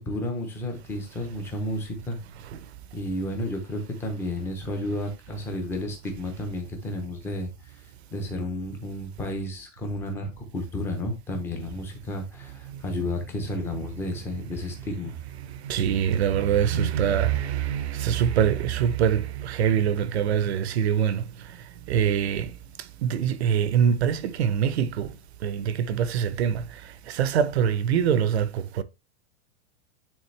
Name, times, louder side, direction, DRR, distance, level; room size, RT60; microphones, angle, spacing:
voice 1, 0.0-2.2 2.9-7.8 8.1-15.2, left 1 dB, 5° left, 0.7 m, -32 dB
voice 2, 15.2-21.5 21.9-25.2 25.4-28.8, right 8 dB, 60° right, 0.7 m, -24 dB
9.5 x 3.7 x 3.3 m
supercardioid pair, 175°, 38 cm